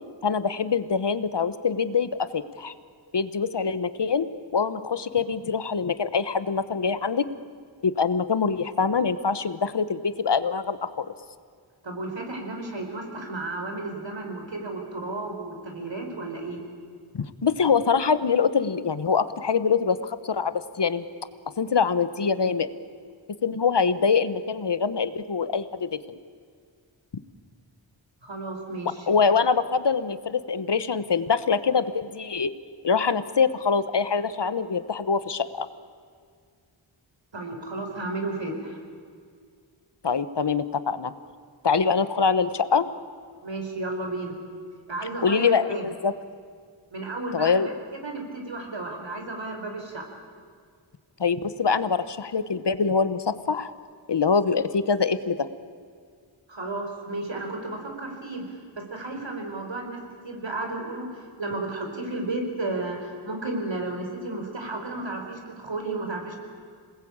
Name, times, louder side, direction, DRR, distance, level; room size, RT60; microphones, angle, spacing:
voice 1, 0.2-2.7 3.1-4.3 4.5-7.3 7.8-11.1 17.1-21.0 21.6-22.7 23.4-26.2 29.1-32.5 32.8-35.7 40.0-41.1 41.6-42.8 45.2-46.1 47.3-47.7 51.2-53.7 54.1-55.5, left 5 dB, 60° left, 13 dB, 1.2 m, -24 dB
voice 2, 11.8-16.6 28.2-29.1 37.3-38.8 43.4-44.4 44.9-45.9 46.9-50.1 56.5-66.4, right 2 dB, 65° right, 3 dB, 4.8 m, -33 dB
27.0 x 20.0 x 8.8 m, 2.1 s
wide cardioid pair, 75°, 47 cm